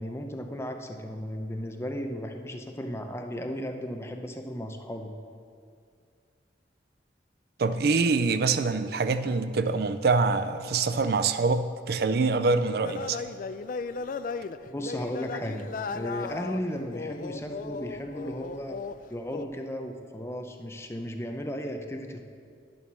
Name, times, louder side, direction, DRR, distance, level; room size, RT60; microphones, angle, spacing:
voice 1, 0.0-5.1 14.7-15.7 15.9-18.8 19.1-22.2, equal, 15° left, 4 dB, 0.7 m, -35 dB
voice 2, 7.6-13.2, right 4 dB, 60° right, 11 dB, 0.4 m, -25 dB
sound 1, 12.8-19.0 19.3-19.4, left 4 dB, 50° left, 0.3 m, -36 dB
10.5 x 7.1 x 6.2 m, 2.3 s
head